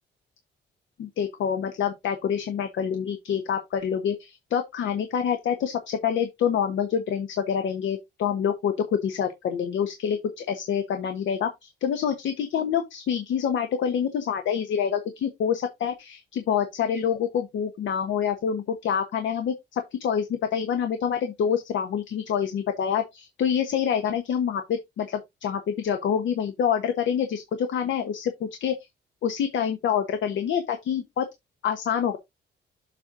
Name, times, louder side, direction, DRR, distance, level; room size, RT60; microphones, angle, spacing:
voice 1, 1.0-28.7 29.2-31.2 31.6-32.2, left 8 dB, 80° left, 1.1 m, -27 dB
7.3 x 4.5 x 3.8 m
wide cardioid pair, 165°, 19 cm